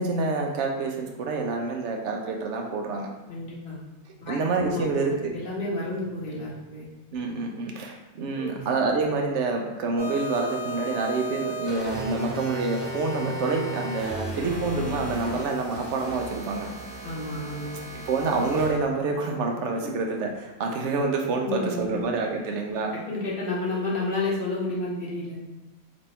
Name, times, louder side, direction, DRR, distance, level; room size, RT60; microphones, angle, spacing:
voice 1, 0.0-3.1 4.3-5.3 7.1-16.7 18.1-22.9, right 3 dB, 65° right, 2 dB, 0.7 m, -27 dB
voice 2, 3.3-3.8 4.2-4.4 4.7-4.9 5.3-6.9 8.3-8.6 17.0-17.8 21.4-22.0 23.1-25.4, left 2 dB, 45° left, -5 dB, 1.0 m, -31 dB
sound 1, 10.0-18.8, right 1 dB, 35° right, 0.9 m, -35 dB
3.1 x 2.6 x 4.2 m, 1.0 s
omnidirectional pair, 1.6 m